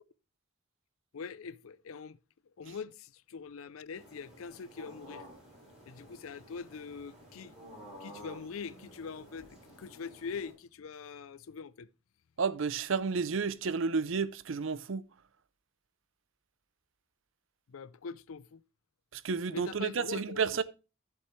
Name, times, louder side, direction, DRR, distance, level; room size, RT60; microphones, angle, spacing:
voice 1, 1.1-2.2 2.6-5.3 5.9-7.5 8.0-11.9 17.7-18.6 19.5-20.6, left 5 dB, 80° left, 0.5 m, -43 dB
sound 1, 3.9-10.5, equal, 5° right, 6.0 m, -52 dB
voice 2, 12.4-15.1 19.1-20.6, right 5 dB, 65° right, 0.5 m, -31 dB
14.0 x 7.0 x 3.1 m
head